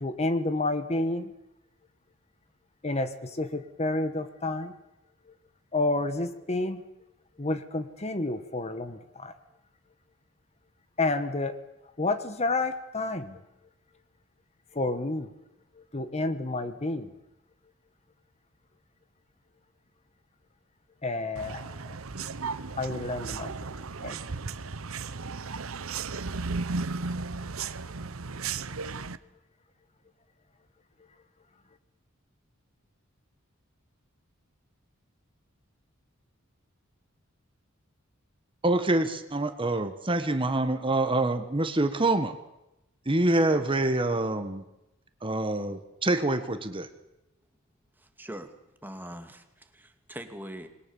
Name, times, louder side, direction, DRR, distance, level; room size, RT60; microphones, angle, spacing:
voice 1, 0.0-1.3 2.8-4.8 5.7-6.8 7.4-9.3 11.0-11.6 12.0-13.4 14.7-15.3 15.9-17.1 21.0-21.8 22.8-23.5 24.0-24.2, left 2 dB, 30° left, 10 dB, 1.4 m, -29 dB
sound 1, 21.4-29.2, right 4 dB, 80° right, 1.0 m, -35 dB
voice 2, 38.6-42.3 43.0-44.6 45.2-46.9, right 2 dB, 25° right, 8 dB, 1.5 m, -26 dB
voice 3, 48.0-48.5 48.8-50.7, equal, 10° right, 6 dB, 2.2 m, -42 dB
27.0 x 21.0 x 7.2 m, 0.89 s
head